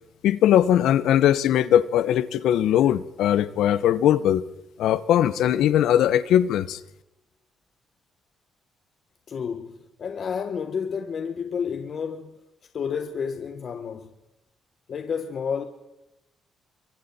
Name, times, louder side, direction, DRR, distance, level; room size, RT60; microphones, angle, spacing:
voice 1, 0.2-4.4 4.8-6.8, left 11 dB, 80° left, 1.0 m, -20 dB
voice 2, 9.3-12.3 12.7-14.1 14.9-15.6, left 6 dB, 55° left, 1.4 m, -30 dB
27.5 x 24.0 x 4.3 m
cardioid pair, 90°, 0 cm